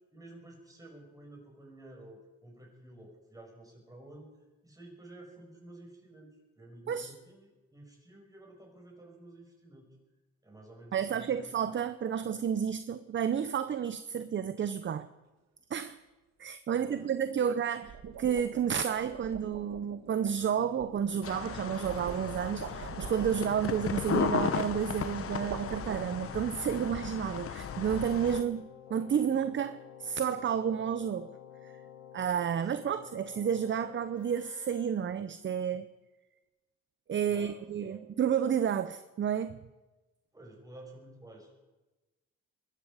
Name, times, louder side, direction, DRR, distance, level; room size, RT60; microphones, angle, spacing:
voice 1, 0.1-4.3 4.6-9.9 10.4-11.5 16.7-17.1 17.3-17.5 28.4-28.6 29.3-29.4 37.3-38.0 40.3-41.5, right 1 dB, 10° right, 1 dB, 5.8 m, -52 dB
voice 2, 10.9-15.1 15.7-16.0 16.4-17.9 18.2-31.3 31.6-31.7 32.1-35.9 37.1-39.6, right 8 dB, 40° right, 12 dB, 0.7 m, -31 dB
sound 1, 12.1-12.4 17.6-26.5, right 8 dB, 60° right, 1.5 m, -45 dB
Keyboard (musical), 20.4-35.5, left 10 dB, 80° left, 1.5 m, -53 dB
sound 2, 21.2-28.4, left 7 dB, 45° left, 1.1 m, -35 dB
22.5 x 13.0 x 5.0 m, 1.1 s
cardioid pair, 90°, 30 cm